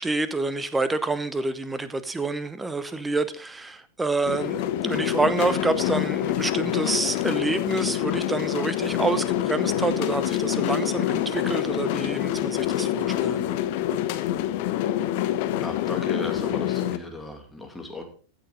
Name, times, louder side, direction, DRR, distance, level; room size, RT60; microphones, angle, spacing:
voice 1, 0.0-13.5, right 3 dB, 10° right, 0.9 m, -28 dB
sound 1, 4.3-17.0, left 12 dB, 50° left, 0.9 m, -26 dB
voice 2, 15.6-18.0, left 1 dB, 5° left, 2.4 m, -35 dB
14.5 x 6.8 x 4.0 m
figure-of-eight pair, 90°, 0 cm